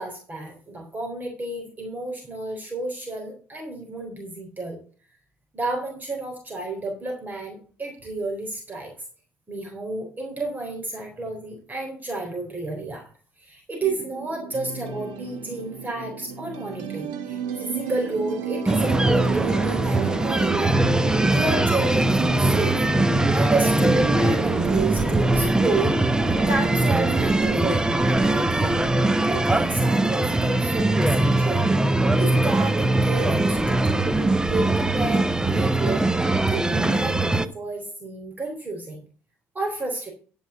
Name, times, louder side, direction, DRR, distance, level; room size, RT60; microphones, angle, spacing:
voice 1, 0.0-4.8 5.5-8.9 9.5-13.1 13.4-20.8 21.3-22.8 23.3-26.0 26.4-28.8 29.2-31.7 32.1-36.1 36.5-39.0 39.5-40.1, right 2 dB, 30° right, 2 dB, 3.8 m, -31 dB
sound 1, 13.8-27.8, right 8 dB, 85° right, 1.7 m, -33 dB
sound 2, 18.7-37.5, right 2 dB, 10° right, 0.9 m, -21 dB
11.5 x 5.6 x 7.0 m, 0.41 s
supercardioid pair, 70°, 6 cm